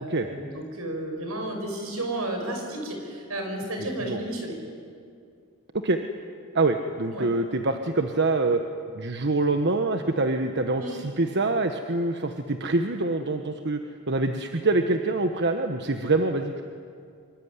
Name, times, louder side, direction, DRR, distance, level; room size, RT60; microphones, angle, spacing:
voice 1, 0.0-4.6 7.1-7.3 10.8-11.0, right 1 dB, 75° right, 3 dB, 6.4 m, -32 dB
voice 2, 6.5-8.6 8.9-13.8 14.1-16.6, right 2 dB, 55° right, 6 dB, 1.3 m, -25 dB
26.0 x 24.0 x 9.8 m, 2.4 s
head